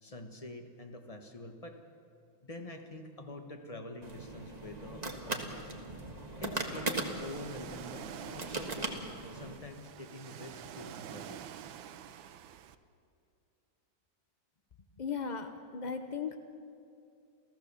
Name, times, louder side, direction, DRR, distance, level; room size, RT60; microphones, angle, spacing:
voice 1, 0.0-1.8 2.4-5.9 6.4-9.0 9.3-11.4, left 2 dB, 20° left, 5 dB, 1.3 m, -46 dB
sound 1, 4.0-9.6, right 2 dB, 25° right, 1.4 m, -39 dB
Ocean, 6.9-12.8, right 10 dB, 85° right, 1.5 m, -47 dB
voice 2, 15.0-16.4, left 6 dB, 55° left, 7 dB, 0.4 m, -37 dB
28.5 x 15.5 x 7.0 m, 2.6 s
omnidirectional pair, 2.1 m